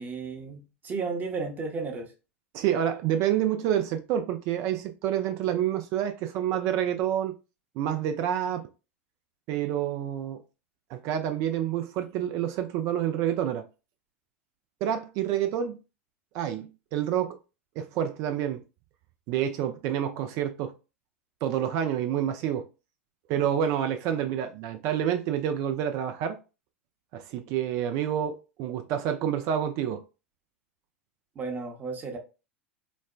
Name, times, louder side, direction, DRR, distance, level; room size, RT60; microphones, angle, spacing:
voice 1, 0.0-2.1 31.3-32.2, right 4 dB, 25° right, 0.9 m, -33 dB
voice 2, 2.5-7.4 7.8-8.7 9.5-10.4 10.9-13.6 14.8-15.8 16.3-17.4 17.8-18.6 19.3-20.7 21.4-22.7 23.3-26.4 27.1-30.0, right 10 dB, 45° right, 0.4 m, -28 dB
4.1 x 2.1 x 2.4 m
figure-of-eight pair, 90°, 7 cm